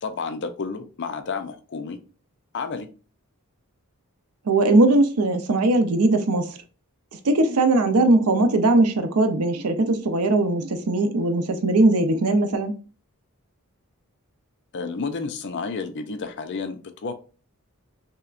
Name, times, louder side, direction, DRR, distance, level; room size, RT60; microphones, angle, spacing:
voice 1, 0.0-2.0 2.5-2.9 14.7-17.1, left 4 dB, 55° left, 0.5 m, -31 dB
voice 2, 4.5-6.5 7.2-12.7, right 2 dB, 85° right, 0.6 m, -20 dB
5.5 x 2.1 x 2.4 m
head